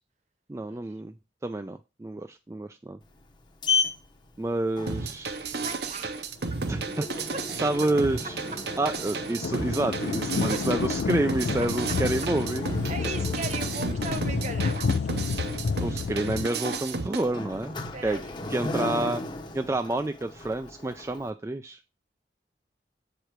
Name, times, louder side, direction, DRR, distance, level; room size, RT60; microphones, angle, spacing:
voice 1, 0.5-1.1 1.4-3.0 4.4-5.4 6.7-7.0 7.6-8.4 8.8-12.7 15.8-18.2 18.5-19.2 19.5-21.8, right 2 dB, 15° right, 8 dB, 0.3 m, -29 dB
Sliding door, 3.0-21.3, left 3 dB, 25° left, 0.8 m, -36 dB
sound 1, 4.9-17.2, right 4 dB, 65° right, 0.8 m, -33 dB
voice 2, 5.6-6.7 10.5-10.7 12.9-15.1 17.9-18.3, right 3 dB, 40° right, 9 dB, 1.0 m, -38 dB
sound 2, 9.4-16.5, left 5 dB, 75° left, 0.4 m, -30 dB
7.5 x 5.0 x 4.5 m, 0.28 s
head